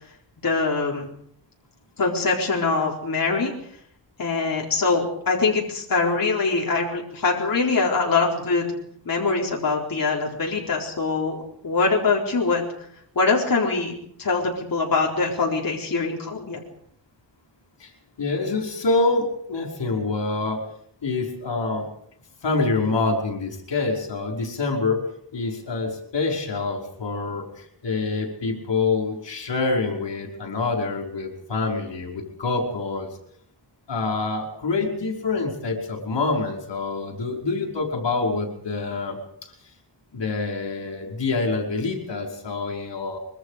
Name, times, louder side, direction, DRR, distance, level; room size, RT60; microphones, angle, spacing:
voice 1, 0.4-1.1 2.0-3.5 4.2-8.7 9.1-12.6 13.2-13.9 14.2-16.6, left 4 dB, 50° left, -2 dB, 4.2 m, -23 dB
voice 2, 18.2-20.6 21.0-21.9 22.4-25.1 25.3-33.1 33.9-39.2 40.1-43.2, left 3 dB, 80° left, 2 dB, 5.4 m, -26 dB
25.0 x 23.5 x 5.1 m, 0.67 s
wide cardioid pair, 180°, 42 cm